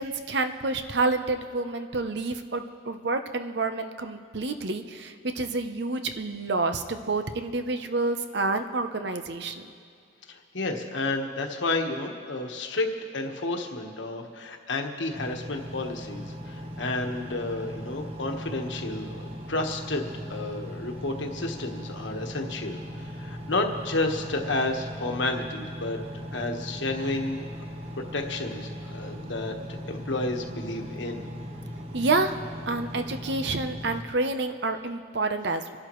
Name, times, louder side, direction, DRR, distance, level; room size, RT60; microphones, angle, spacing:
voice 1, 0.0-9.7 31.9-32.4 32.7-35.8, right 3 dB, 60° right, 8 dB, 0.8 m, -28 dB
voice 2, 10.3-12.9 13.1-26.0 26.3-27.4 28.1-31.2, left 2 dB, 75° left, 3 dB, 1.4 m, -31 dB
Engine, 15.1-34.0, equal, 30° right, 1.1 m, -38 dB
28.5 x 11.5 x 3.1 m, 2.4 s
head